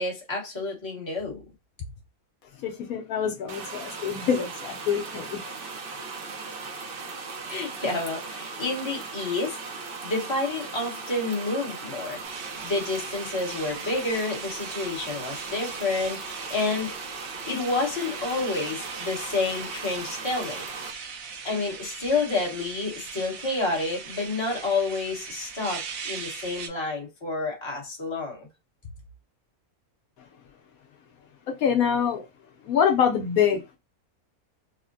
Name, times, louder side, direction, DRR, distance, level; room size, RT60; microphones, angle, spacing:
voice 1, 0.0-1.4 7.4-9.6 10.0-12.2 12.6-17.0 17.5-20.7 21.4-28.5, left 3 dB, 20° left, 1.0 m, -29 dB
voice 2, 2.6-5.4 31.6-32.2 32.6-33.8, left 8 dB, 75° left, 1.1 m, -25 dB
sound 1, 3.5-20.9, right 4 dB, 50° right, 0.7 m, -38 dB
sound 2, 12.2-26.7, right 6 dB, 70° right, 1.0 m, -40 dB
3.5 x 2.1 x 2.5 m
omnidirectional pair, 1.6 m